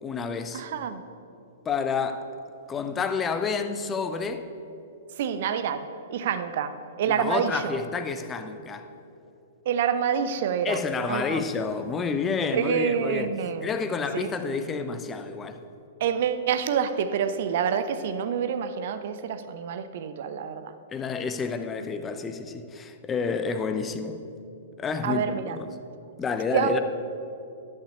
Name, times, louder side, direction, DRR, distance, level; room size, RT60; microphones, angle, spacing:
voice 1, 0.0-0.6 1.6-2.3 2.7-4.5 7.1-8.9 10.6-13.3 13.6-15.6 20.9-24.3 24.8-25.8 26.2-26.8, left 5 dB, 20° left, 0.7 m, -29 dB
voice 2, 0.5-1.0 5.2-7.8 9.7-10.8 11.1-11.4 12.5-13.7 14.1-14.3 16.0-20.7 25.0-25.6 26.5-26.8, right 7 dB, 50° right, 0.7 m, -27 dB
11.5 x 5.8 x 6.8 m
figure-of-eight pair, 105°, 0 cm